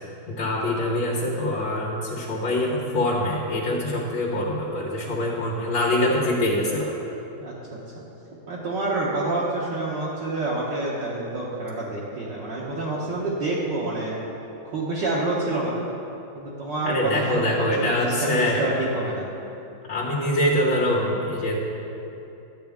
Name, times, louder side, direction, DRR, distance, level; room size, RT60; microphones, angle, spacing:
voice 1, 0.3-6.9 16.8-18.7 19.9-21.6, left 1 dB, 85° left, -5 dB, 1.9 m, -24 dB
voice 2, 7.4-7.8 8.5-14.2 14.6-15.8 16.3-19.3, right 2 dB, 65° right, -7 dB, 1.7 m, -28 dB
12.5 x 7.9 x 3.5 m, 2.9 s
omnidirectional pair, 2.1 m